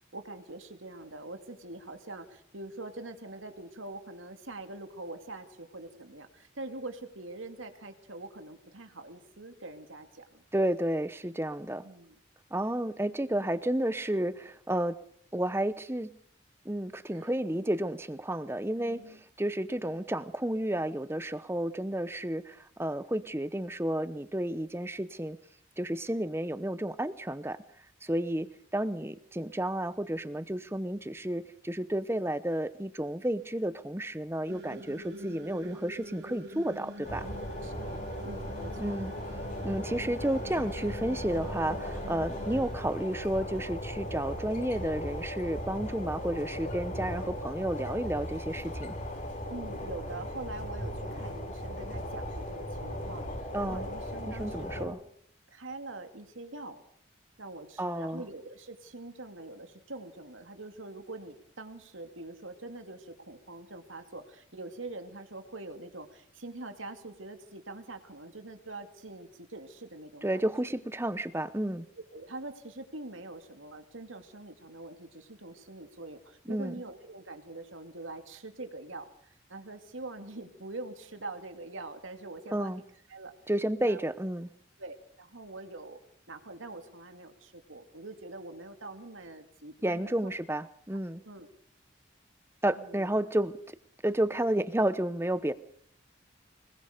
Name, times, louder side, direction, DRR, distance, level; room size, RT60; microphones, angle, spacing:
voice 1, 0.1-10.4 11.8-12.2 17.1-17.4 18.8-19.2 28.4-28.5 37.6-39.0 49.5-55.0 55.5-56.8 57.4-70.5 72.1-82.8 83.1-83.3 83.8-84.0 84.8-86.0 86.3-90.3 91.2-91.5 92.8-93.1, right 2 dB, 85° right, 7 dB, 2.5 m, -44 dB
voice 2, 10.5-11.8 12.5-15.0 15.3-16.1 16.6-25.4 25.8-27.6 28.0-37.3 38.8-39.1 39.6-49.0 53.5-53.9 54.3-55.0 57.8-58.2 70.2-71.9 76.5-76.7 82.5-82.8 83.5-84.5 89.8-91.2 92.6-93.6 94.0-95.5, right 1 dB, 10° right, 14 dB, 0.8 m, -31 dB
sound 1, 34.5-42.7, right 1 dB, 60° right, 2.9 m, -45 dB
sound 2, 37.0-54.8, equal, 40° left, 5.7 m, -37 dB
25.0 x 21.5 x 5.2 m, 0.67 s
head